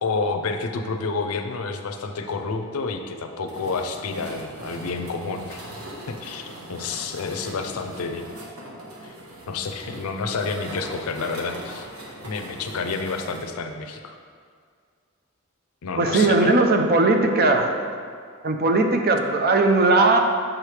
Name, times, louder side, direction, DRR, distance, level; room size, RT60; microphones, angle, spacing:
voice 1, 0.0-5.6 6.1-8.3 9.0-9.2 9.5-11.9 12.2-14.2 15.8-16.5, left 4 dB, 80° left, 6 dB, 0.5 m, -29 dB
sound 1, 3.5-13.4, right 1 dB, 80° right, 1.1 m, -40 dB
voice 2, 16.0-17.7 18.4-20.2, right 2 dB, 45° right, 4 dB, 0.5 m, -18 dB
7.3 x 4.8 x 3.2 m, 2.1 s
head